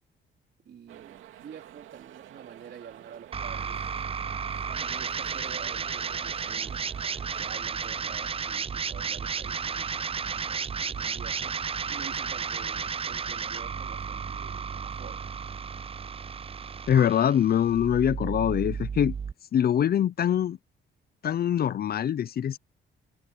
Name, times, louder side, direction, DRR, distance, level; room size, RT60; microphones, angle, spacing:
voice 1, 0.6-3.9 4.7-6.8 7.3-11.6 11.9-15.3, right 8 dB, 60° right, 3.9 m, -48 dB
sound 1, 0.9-7.6, right 12 dB, 85° right, 2.7 m, -49 dB
sound 2, 3.3-19.3, right 6 dB, 30° right, 0.6 m, -33 dB
voice 2, 16.9-19.1 19.5-20.6 21.2-22.6, left 9 dB, 50° left, 0.7 m, -24 dB
cardioid pair, 90°, 20 cm